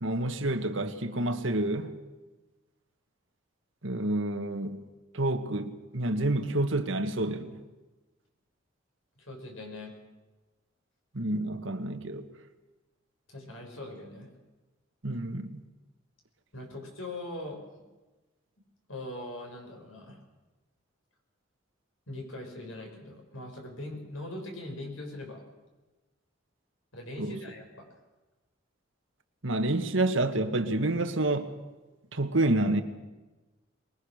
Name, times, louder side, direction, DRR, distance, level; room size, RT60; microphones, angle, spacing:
voice 1, 0.0-1.9 3.8-4.8 5.1-7.6 11.1-12.3 15.0-15.6 27.2-27.3 29.4-31.5 32.1-32.8, right 2 dB, 70° right, 1.8 m, -28 dB
voice 2, 9.2-9.9 13.3-14.3 16.5-17.9 18.9-20.2 22.1-25.4 26.9-27.9, left 1 dB, 85° left, 6.5 m, -41 dB
23.5 x 21.0 x 6.6 m
head